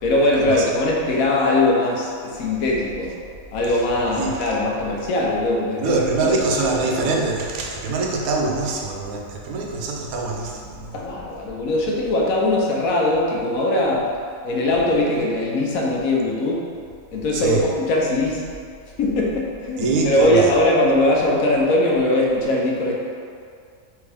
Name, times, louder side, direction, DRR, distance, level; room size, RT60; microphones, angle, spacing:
voice 1, 0.0-3.2 3.5-7.2 10.9-14.1 14.4-16.7 17.1-18.4 19.0-22.9, left 1 dB, 80° left, -2 dB, 1.1 m, -21 dB
voice 2, 5.8-11.0 17.3-17.6 19.8-20.5, right 3 dB, 85° right, -1 dB, 1.1 m, -24 dB
3.6 x 3.5 x 3.3 m, 2.2 s
omnidirectional pair, 1.5 m